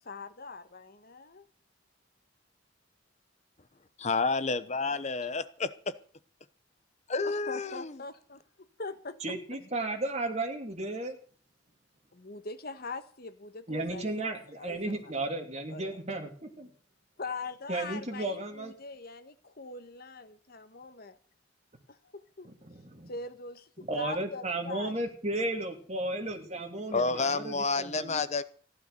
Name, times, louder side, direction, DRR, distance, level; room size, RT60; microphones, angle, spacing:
voice 1, 0.0-1.4 4.5-5.1 7.2-9.2 9.6-9.7 12.1-15.1 15.7-16.0 17.2-21.2 21.9-22.5 23.1-24.9 26.9-27.3, left 4 dB, 50° left, 1.4 m, -42 dB
voice 2, 4.0-5.7 7.1-7.9 26.9-28.4, left 4 dB, 35° left, 0.9 m, -29 dB
voice 3, 9.2-11.2 13.7-16.7 17.7-18.7 22.4-23.1 23.8-28.2, right 2 dB, 35° right, 2.8 m, -34 dB
15.0 x 11.0 x 6.7 m
head